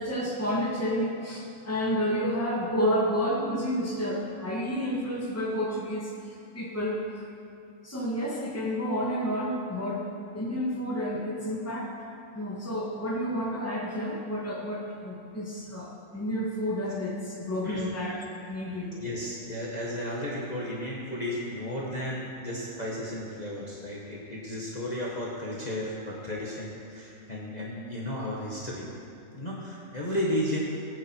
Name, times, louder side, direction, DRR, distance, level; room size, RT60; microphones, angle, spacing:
voice 1, 0.0-7.0 7.8-10.1 10.3-11.9 12.3-19.0, equal, 10° left, -4 dB, 2.0 m, -30 dB
voice 2, 19.0-28.9 29.3-30.6, left 1 dB, 30° left, -5 dB, 1.8 m, -33 dB
20.0 x 9.5 x 4.6 m, 2.6 s
omnidirectional pair, 1.6 m